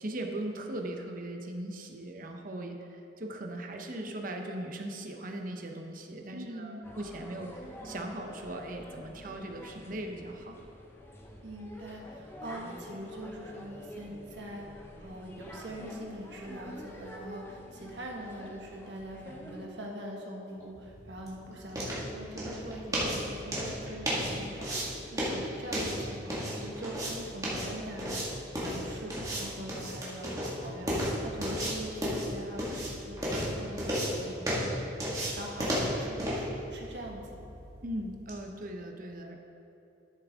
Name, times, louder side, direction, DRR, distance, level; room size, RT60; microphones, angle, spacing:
voice 1, 0.0-10.6 37.8-39.4, right 1 dB, 45° right, 3 dB, 0.8 m, -39 dB
voice 2, 6.3-6.9 11.4-37.5, right 1 dB, 65° right, -1 dB, 1.5 m, -43 dB
sound 1, 6.8-19.7, equal, 15° left, 0.8 m, -47 dB
sound 2, 20.6-38.4, equal, 20° right, 1.9 m, -34 dB
11.5 x 7.2 x 3.7 m, 2.8 s
head